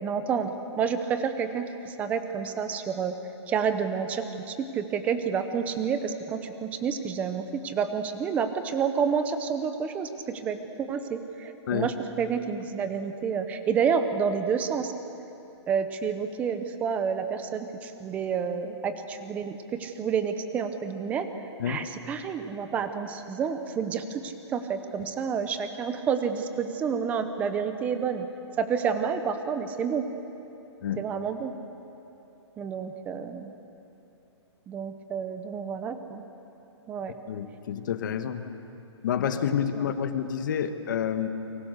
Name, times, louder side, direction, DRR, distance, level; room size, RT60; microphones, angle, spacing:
voice 1, 0.0-3.2 3.5-14.9 15.7-21.3 21.6-28.3 28.6-30.0 31.0-31.5 32.6-33.5 34.7-36.2 36.9-37.1 39.7-39.8, right 6 dB, 10° right, 9 dB, 0.8 m, -29 dB
voice 2, 37.3-38.4 39.0-41.3, left 8 dB, 45° left, 8 dB, 1.5 m, -28 dB
29.5 x 24.5 x 6.7 m, 3.0 s
hypercardioid pair, 170°, 15 cm